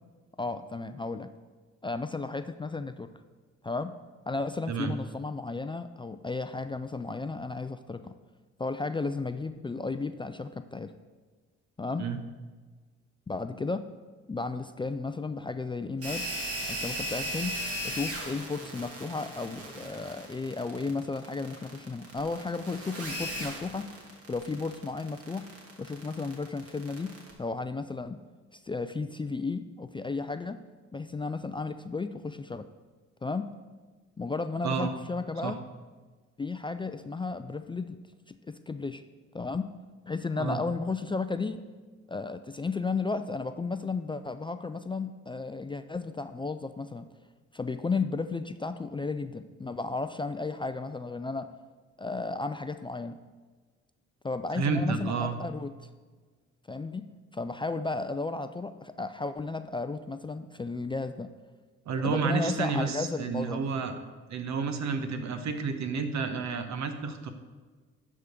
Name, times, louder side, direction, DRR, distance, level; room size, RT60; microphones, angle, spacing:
voice 1, 0.4-1.3 1.8-3.1 3.6-3.9 4.3-8.1 8.6-10.9 11.8-12.0 13.3-13.9 14.3-16.2 16.7-17.5 17.8-23.9 24.3-25.5 25.8-27.1 27.4-28.2 28.5-30.6 30.9-32.6 33.2-33.5 34.2-35.6 36.4-38.0 38.3-39.0 39.3-39.7 40.1-41.6 42.1-47.1 47.5-51.5 52.0-53.2 54.2-55.7 56.7-57.0 57.3-61.3 62.0-63.6, left 3 dB, 15° left, 9 dB, 0.4 m, -34 dB
sound 1, 16.0-27.3, equal, 50° right, 2.2 m, -37 dB
voice 2, 54.5-55.4 61.9-63.9 64.3-67.3, right 5 dB, 65° right, 8 dB, 1.0 m, -30 dB
11.0 x 3.7 x 6.6 m, 1.4 s
cardioid pair, 90°, 30 cm